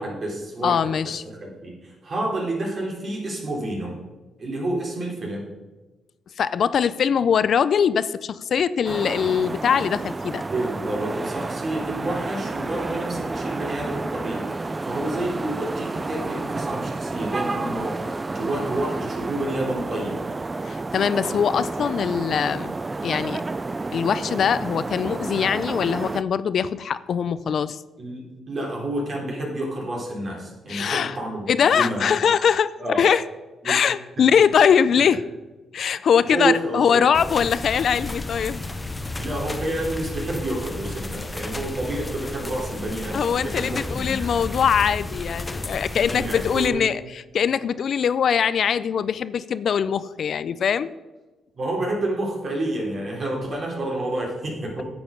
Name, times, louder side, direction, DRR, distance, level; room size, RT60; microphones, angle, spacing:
voice 1, 0.0-4.0 4.4-5.5 10.5-20.2 28.0-32.1 32.8-33.0 33.6-33.8 36.3-37.0 39.2-44.5 46.1-46.9 51.6-54.8, right 1 dB, 50° right, -2 dB, 3.8 m, -29 dB
voice 2, 0.6-1.2 6.4-10.4 20.6-22.7 23.0-23.4 23.9-27.8 30.7-31.2 31.5-33.2 33.6-35.2 35.7-38.6 43.1-47.0 47.3-50.9, left 7 dB, 65° left, 15 dB, 0.4 m, -22 dB
sound 1, 8.8-26.2, right 3 dB, 25° right, 0.3 m, -30 dB
sound 2, 37.1-46.7, left 2 dB, 20° left, 0.8 m, -33 dB
9.8 x 7.9 x 5.2 m, 1.2 s
cardioid pair, 90°, 0 cm